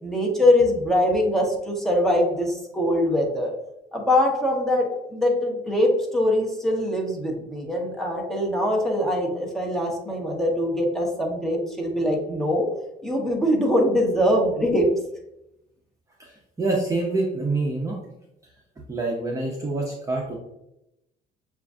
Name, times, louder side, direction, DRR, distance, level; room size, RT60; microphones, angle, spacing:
voice 1, 0.0-3.5 3.9-4.8 5.1-12.7 13.0-14.9, left 1 dB, ahead, -1 dB, 1.0 m, -22 dB
voice 2, 16.2-18.0 18.9-20.4, right 2 dB, 20° right, -3 dB, 0.7 m, -26 dB
6.6 x 2.6 x 2.4 m, 0.86 s
cardioid pair, 110°, 17 cm